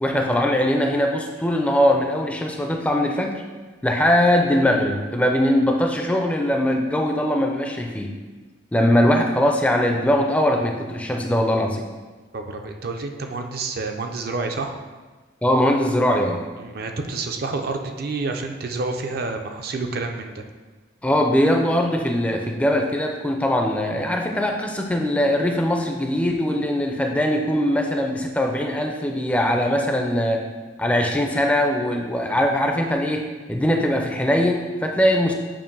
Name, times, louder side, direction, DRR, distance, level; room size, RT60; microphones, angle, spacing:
voice 1, 0.0-3.4 3.8-8.1 8.7-11.9 15.4-16.5 21.0-30.5 30.8-35.3, equal, 5° left, 3 dB, 0.4 m, -21 dB
voice 2, 12.3-14.7 16.6-20.4, right 3 dB, 50° right, 5 dB, 0.5 m, -29 dB
7.4 x 2.5 x 5.3 m, 1.3 s
head